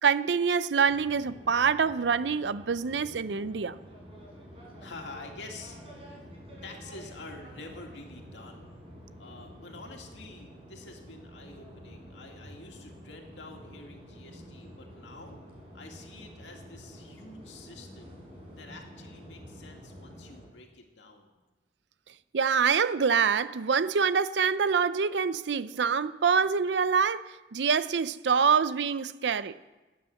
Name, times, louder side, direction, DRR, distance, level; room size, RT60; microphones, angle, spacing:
voice 1, 0.0-3.8 22.3-29.6, right 6 dB, 75° right, 0.5 m, -25 dB
sound 1, 0.9-20.5, equal, 35° right, 4.2 m, -48 dB
voice 2, 4.5-5.8 6.6-8.7 9.2-15.4 15.7-18.2 18.5-21.3, left 3 dB, 90° left, 2.3 m, -48 dB
15.0 x 9.3 x 7.1 m
head